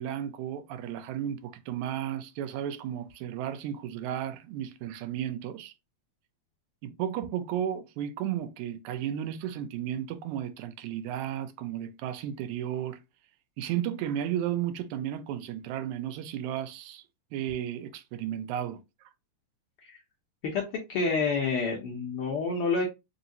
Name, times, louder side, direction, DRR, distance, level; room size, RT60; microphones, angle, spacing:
voice 1, 0.0-5.7 6.8-13.0 13.6-17.0 17.3-18.8, right 10 dB, 85° right, 2.0 m, -33 dB
voice 2, 20.9-22.9, left 4 dB, 75° left, 1.3 m, -28 dB
4.9 x 2.7 x 2.7 m
omnidirectional pair, 3.3 m